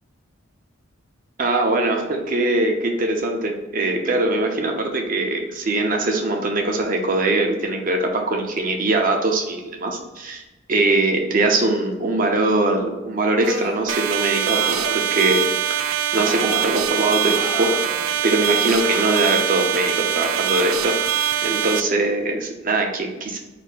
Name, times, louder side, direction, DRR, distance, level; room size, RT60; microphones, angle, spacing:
voice 1, 1.4-10.4 10.7-15.4 15.7-15.8 16.1-17.7 18.2-21.0 21.4-23.4, right 2 dB, 45° right, 2 dB, 0.7 m, -22 dB
sound 1, 13.4-13.9 14.4-15.0 16.2-16.7 17.2-18.1 18.8-19.3 20.7-21.2, right 1 dB, 60° right, 1.3 m, -33 dB
sound 2, 13.9-21.8, right 10 dB, 90° right, 0.3 m, -23 dB
4.2 x 2.1 x 4.5 m, 1.1 s
head